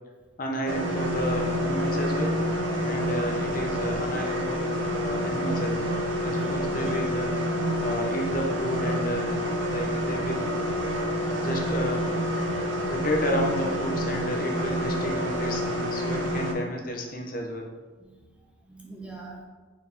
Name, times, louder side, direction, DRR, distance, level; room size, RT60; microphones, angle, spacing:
voice 1, 0.4-2.4 2.8-7.3 7.8-10.5 11.4-12.1 12.8-17.7, equal, 45° left, 1 dB, 0.8 m, -32 dB
sound 1, 0.7-16.5, equal, 75° right, 0.8 m, -28 dB
voice 2, 6.2-7.1 18.0-19.4, right 2 dB, 5° right, -2 dB, 0.7 m, -45 dB
6.4 x 4.2 x 3.5 m, 1.3 s
head